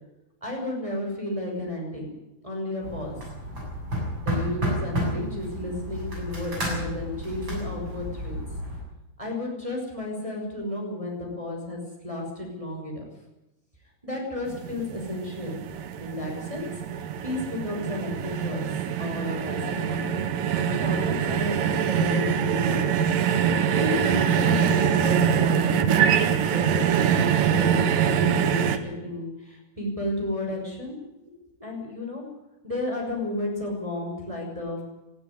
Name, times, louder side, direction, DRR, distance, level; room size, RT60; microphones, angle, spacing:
voice 1, 0.4-2.1 2.4-3.2 4.2-8.4 9.2-13.0 14.0-15.6 16.0-16.6 16.9-18.7 19.0-20.1 20.7-22.9 23.7-26.8 27.1-30.9 31.2-31.3 31.6-32.2 32.6-34.8, left 1 dB, 5° right, -1 dB, 5.5 m, -32 dB
sound 1, 2.8-8.8, equal, 20° right, 7.6 m, -31 dB
sound 2, 14.5-28.8, right 8 dB, 80° right, 1.9 m, -24 dB
19.5 x 15.0 x 9.8 m, 0.96 s
omnidirectional pair, 5.9 m